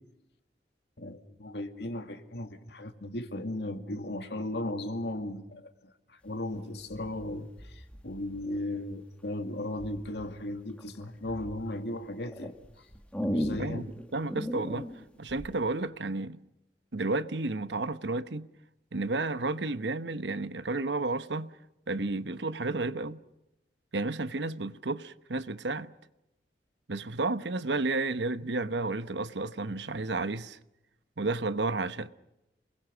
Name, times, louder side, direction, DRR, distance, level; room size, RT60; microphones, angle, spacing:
voice 1, 1.0-12.9 13.2-13.9, left 1 dB, 75° left, 2.2 m, -36 dB
sound 1, 6.9-8.8 9.8-10.3 10.8-11.6 12.2-15.6, equal, 5° left, 1.9 m, -37 dB
voice 2, 14.1-14.9 15.2-16.4 16.9-18.5 18.9-21.5 21.9-23.2 23.9-25.9 26.9-30.6 31.2-32.1, right 3 dB, 85° right, 1.0 m, -32 dB
29.0 x 21.5 x 6.3 m
head